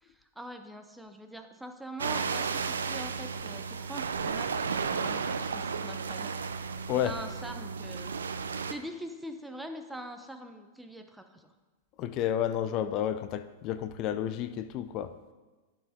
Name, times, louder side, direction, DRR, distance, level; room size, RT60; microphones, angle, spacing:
voice 1, 0.0-6.4 7.0-8.2 8.4-11.5, right 1 dB, 5° right, 6 dB, 0.8 m, -43 dB
sound 1, 2.0-8.7, right 5 dB, 85° right, 0.4 m, -33 dB
voice 2, 12.0-15.1, left 10 dB, 45° left, 12 dB, 0.5 m, -31 dB
11.0 x 5.0 x 3.7 m, 1.3 s
hypercardioid pair, 105°, 0 cm